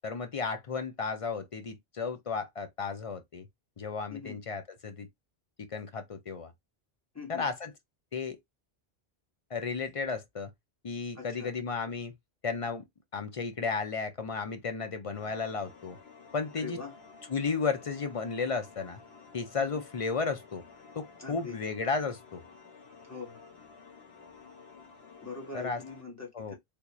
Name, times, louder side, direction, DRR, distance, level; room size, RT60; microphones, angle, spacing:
voice 1, 0.0-3.5 3.8-5.1 5.6-6.5 7.3-7.7 8.1-8.4 9.5-10.5 10.8-12.1 12.4-12.8 13.1-16.0 16.3-16.8 17.3-19.0 19.3-20.6 21.0-22.4 25.5-25.8 26.3-26.5, left 4 dB, 45° left, 0.5 m, -33 dB
voice 2, 7.1-7.5 11.1-11.6 16.5-17.0 19.7-19.8 21.2-21.6 23.0-23.4 25.2-26.6, left 4 dB, 15° left, 1.5 m, -42 dB
sound 1, 15.1-26.0, left 5 dB, 75° left, 1.3 m, -53 dB
3.5 x 2.4 x 3.0 m
omnidirectional pair, 1.1 m